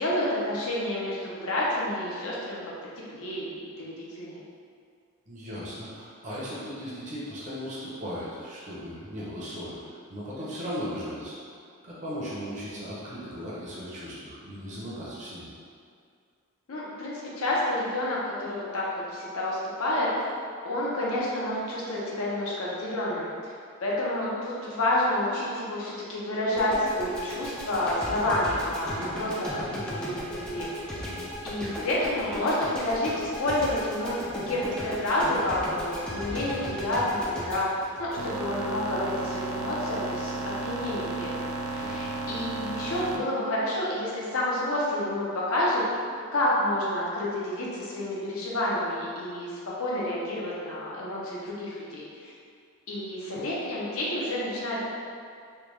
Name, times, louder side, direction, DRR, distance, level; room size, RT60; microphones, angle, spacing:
voice 1, 0.0-2.6 3.1-4.4 16.7-20.1 20.6-23.5 23.8-31.0 31.4-45.8 46.3-49.5 49.8-52.3 52.9-54.9, left 1 dB, 75° left, -5 dB, 0.7 m, -29 dB
voice 2, 5.3-11.3 11.8-15.5 31.0-31.4 41.8-42.0, equal, 35° right, -8 dB, 0.7 m, -37 dB
sound 1, 26.6-38.8, equal, 5° left, 0.3 m, -36 dB
sound 2, 38.2-43.2, right 2 dB, 75° right, 0.4 m, -33 dB
3.3 x 2.3 x 3.1 m, 2.3 s
head